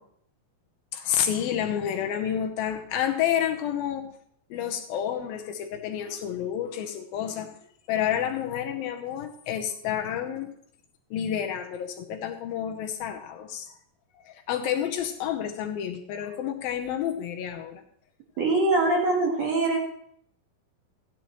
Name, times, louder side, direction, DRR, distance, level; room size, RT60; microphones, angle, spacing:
voice 1, 0.9-4.1 4.5-7.6 7.9-10.5 11.1-13.7 14.1-17.8, left 9 dB, 75° left, 5 dB, 2.5 m, -29 dB
voice 2, 18.4-19.8, right 2 dB, 55° right, -1 dB, 2.1 m, -23 dB
14.0 x 10.0 x 3.0 m, 0.66 s
omnidirectional pair, 4.5 m